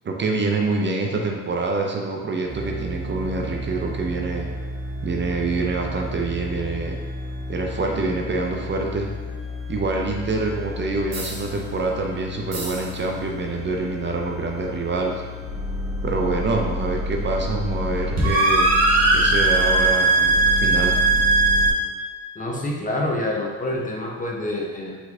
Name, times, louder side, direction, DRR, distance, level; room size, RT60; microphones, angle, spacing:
voice 1, 0.0-4.4 5.0-6.9 7.5-9.1 9.7-15.1 16.0-18.7 19.1-21.0, right 3 dB, 40° right, 1 dB, 0.6 m, -26 dB
sound 1, 2.5-21.7, right 2 dB, 60° right, 1.3 m, -24 dB
voice 2, 22.3-25.0, left 1 dB, 25° left, -1 dB, 0.8 m, -27 dB
4.5 x 4.1 x 2.7 m, 1.4 s
cardioid pair, 90°, 30 cm